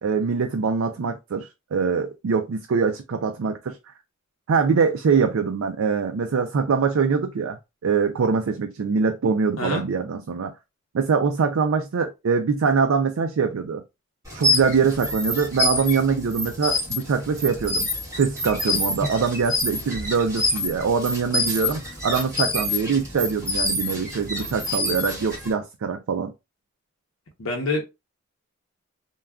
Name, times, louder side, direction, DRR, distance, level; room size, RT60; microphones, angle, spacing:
voice 1, 0.0-3.8 4.5-10.5 10.9-13.8 14.3-26.3, right 5 dB, 70° right, 0.4 m, -23 dB
sound 1, 14.2-25.5, left 2 dB, 15° right, 1.7 m, -27 dB
voice 2, 27.4-27.8, left 2 dB, 70° left, 0.7 m, -26 dB
3.5 x 2.3 x 2.2 m
head